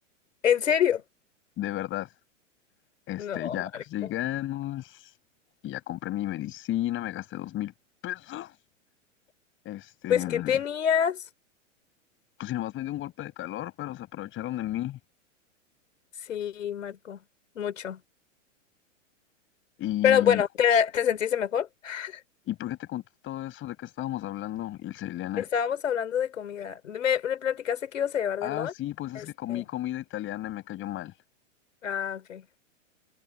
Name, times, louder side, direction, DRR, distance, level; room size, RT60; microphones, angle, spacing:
voice 1, 0.4-1.0 3.2-4.1 10.1-11.2 16.2-17.2 17.6-18.0 20.0-22.2 25.4-28.7 29.1-29.7 31.8-32.4, left 8 dB, 75° left, 4.0 m, -27 dB
voice 2, 1.6-2.1 3.1-4.9 5.6-7.7 8.0-8.5 9.6-10.6 12.4-15.0 19.8-20.4 22.5-25.4 28.4-31.1, left 14 dB, 30° left, 6.6 m, -33 dB
hypercardioid pair, 115°, 38 cm